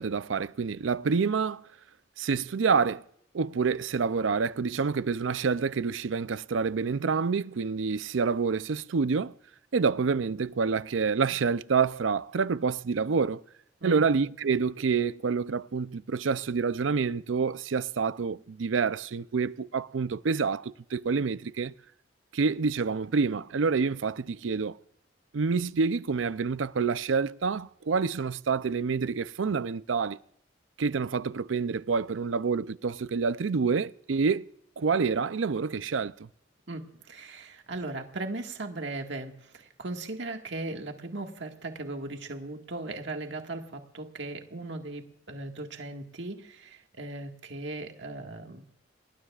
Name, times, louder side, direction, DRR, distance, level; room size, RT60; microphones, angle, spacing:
voice 1, 0.0-1.7 2.2-3.0 3.3-9.3 9.7-13.4 13.8-21.7 22.3-24.8 25.3-30.2 30.8-34.5 34.8-36.3, right 5 dB, 90° right, 0.5 m, -27 dB
voice 2, 36.7-48.6, right 2 dB, 70° right, 1.8 m, -38 dB
28.5 x 20.5 x 2.4 m
head